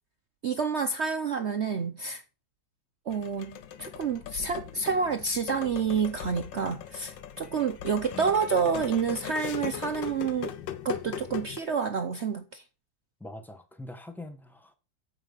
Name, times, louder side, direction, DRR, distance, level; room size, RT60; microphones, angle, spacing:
voice 1, 0.4-2.2 3.1-10.5 10.8-12.6, right 6 dB, 65° right, 0.6 m, -29 dB
sound 1, 3.1-11.6, left 10 dB, 75° left, 1.5 m, -39 dB
voice 2, 13.2-14.7, left 1 dB, ahead, 0.9 m, -43 dB
9.1 x 7.2 x 5.6 m
omnidirectional pair, 2.1 m